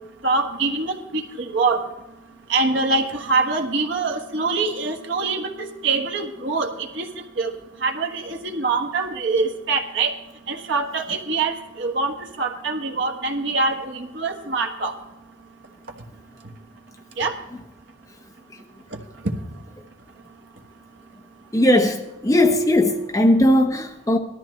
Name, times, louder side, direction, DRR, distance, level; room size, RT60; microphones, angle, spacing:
voice 1, 0.2-1.8 2.5-7.1 7.4-7.5 7.8-10.1 10.5-14.9 17.2-17.3, right 3 dB, 70° right, 1.4 m, -24 dB
voice 2, 21.5-24.2, left 1 dB, 15° left, 0.9 m, -18 dB
18.5 x 13.0 x 3.2 m
head